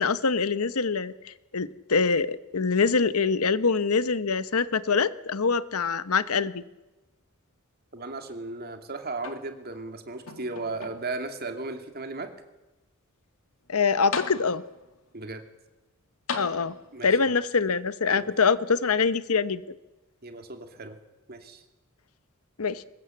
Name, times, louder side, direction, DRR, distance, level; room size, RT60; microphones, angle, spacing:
voice 1, 0.0-6.6 13.7-14.6 16.4-16.7 17.0-19.6 22.6-22.8, left 5 dB, 85° left, 15 dB, 1.0 m, -24 dB
voice 2, 7.9-12.3 15.1-15.4 16.9-17.3 18.1-18.3 20.2-21.0 21.3-21.6, right 3 dB, 45° right, 6 dB, 2.5 m, -36 dB
sound 1, 9.2-9.9 10.3-11.3 12.0-12.1 13.6-13.7 14.1-14.9 16.3-17.1 18.2-18.3, left 5 dB, 65° left, 2.3 m, -37 dB
22.5 x 20.5 x 7.8 m, 1.0 s
head